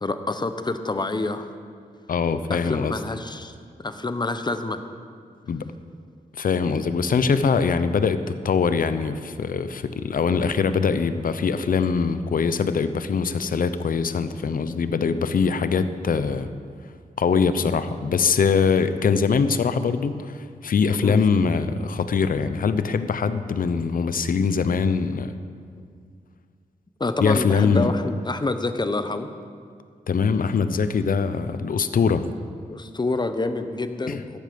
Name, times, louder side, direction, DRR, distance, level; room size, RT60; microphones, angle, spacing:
voice 1, 0.0-1.5 2.5-3.5 3.8-4.8 21.0-21.2 25.8-25.9 27.0-29.3 32.7-34.4, left 2 dB, 30° left, 9 dB, 1.0 m, -27 dB
voice 2, 2.1-2.9 5.5-5.7 6.3-16.5 17.2-25.3 27.2-27.9 30.1-32.3 34.1-34.2, left 5 dB, 65° left, 12 dB, 0.8 m, -22 dB
15.5 x 12.0 x 5.3 m, 2.2 s
cardioid pair, 70°, 15 cm